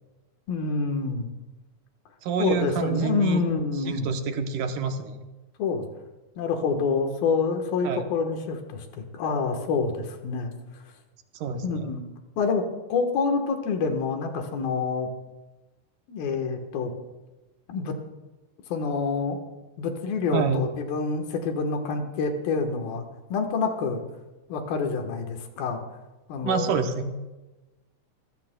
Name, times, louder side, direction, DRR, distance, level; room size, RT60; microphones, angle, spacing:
voice 1, 0.5-1.3 2.4-4.1 5.6-5.9 6.4-10.5 11.6-12.0 12.4-15.1 16.1-16.9 17.7-18.0 18.7-19.4 19.8-23.0 23.3-24.0 24.5-25.8 26.3-26.8, left 4 dB, 90° left, 5 dB, 3.1 m, -27 dB
voice 2, 2.2-3.4 3.9-5.2 7.8-8.0 11.4-11.9 20.3-20.6 26.4-27.2, right 6 dB, 75° right, 6 dB, 2.4 m, -27 dB
26.0 x 15.0 x 2.2 m, 1.1 s
omnidirectional pair, 4.0 m